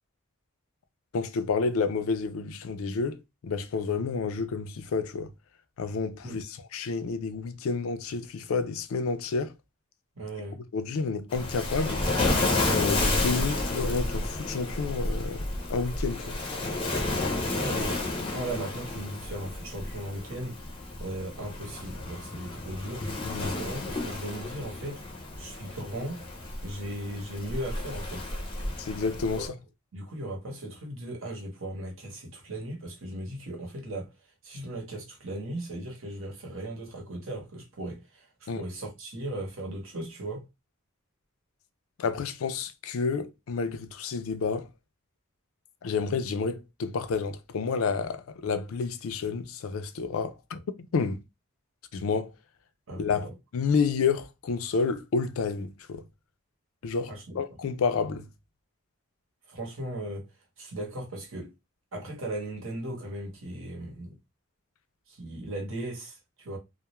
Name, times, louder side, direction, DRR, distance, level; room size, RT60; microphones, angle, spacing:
voice 1, 1.1-5.3 5.8-9.5 10.7-12.0 12.7-16.4 23.2-23.6 28.8-29.5 38.5-38.6 42.0-44.7 45.8-51.2 51.9-52.3 53.0-56.0 56.8-58.3, left 5 dB, 80° left, 0.4 m, -30 dB
voice 2, 10.2-10.6 17.5-20.6 21.0-23.1 23.4-25.0 25.4-26.2 26.6-28.3 29.3-29.4 29.9-34.1 34.4-40.4 52.9-53.3 57.1-57.4 59.5-60.3 60.6-61.5 61.9-64.2 65.1-66.6, right 1 dB, 70° right, 0.9 m, -37 dB
Waves surf, 11.3-29.5, left 2 dB, 25° left, 0.5 m, -31 dB
2.3 x 2.0 x 2.9 m
head